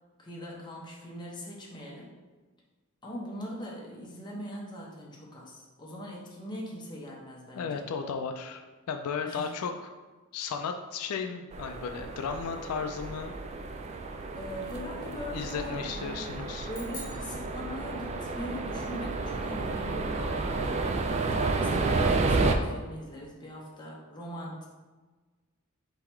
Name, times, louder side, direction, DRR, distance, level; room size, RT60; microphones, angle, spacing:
voice 1, 0.2-2.1 3.0-7.9 9.2-9.5 14.3-16.3 16.6-20.7 21.2-24.7, equal, 20° left, -3 dB, 0.9 m, -41 dB
voice 2, 7.6-9.9 10.3-13.3 15.3-16.7, left 6 dB, 85° left, 6 dB, 0.3 m, -35 dB
sound 1, 11.5-22.5, right 3 dB, 30° right, 0.3 m, -31 dB
sound 2, 16.7-18.4, left 2 dB, 40° left, 1.3 m, -47 dB
3.8 x 2.9 x 4.3 m, 1.3 s
head